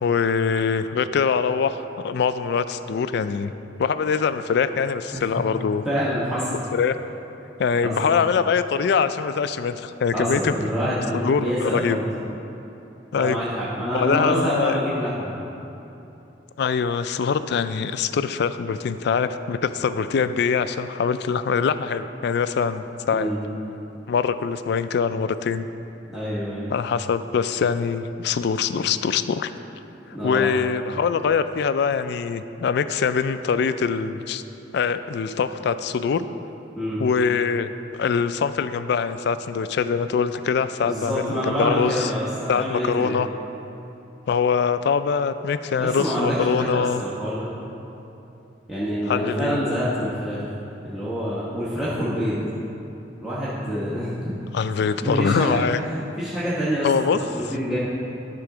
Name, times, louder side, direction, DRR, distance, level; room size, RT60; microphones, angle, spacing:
voice 1, 0.0-3.5 3.8-5.8 6.7-7.0 7.6-10.6 10.8-12.0 13.1-13.4 13.9-14.8 16.6-23.3 24.1-25.7 26.7-29.5 30.2-34.4 34.7-36.3 37.0-37.7 38.0-42.1 42.5-43.3 44.3-47.0 49.1-49.6 54.5-55.8 56.8-57.2, left 6 dB, 65° left, 12 dB, 0.3 m, -23 dB
voice 2, 5.8-6.6 7.8-8.1 10.1-12.0 13.1-15.3 23.1-23.4 26.1-26.7 30.1-30.5 36.7-37.0 40.8-43.1 45.8-47.5 48.7-50.4 50.8-52.4 53.2-54.3 55.0-55.6 56.2-56.9 57.2-57.8, equal, ahead, -12 dB, 1.2 m, -26 dB
11.5 x 3.8 x 6.1 m, 2.9 s
head